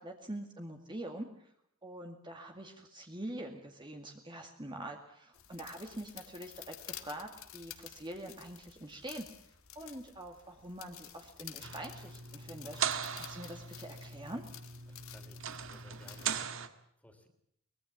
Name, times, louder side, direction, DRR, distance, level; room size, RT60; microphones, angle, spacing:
voice 1, 0.0-1.5 1.8-9.3 9.8-14.4, right 1 dB, 20° right, 3 dB, 2.2 m, -45 dB
sound 1, 5.3-16.4, left 12 dB, 70° left, 2.0 m, -52 dB
sound 2, 11.6-16.7, right 7 dB, 60° right, 1.9 m, -39 dB
voice 2, 14.9-17.3, equal, 5° left, 6 dB, 3.4 m, -60 dB
23.5 x 21.0 x 7.3 m, 0.71 s
head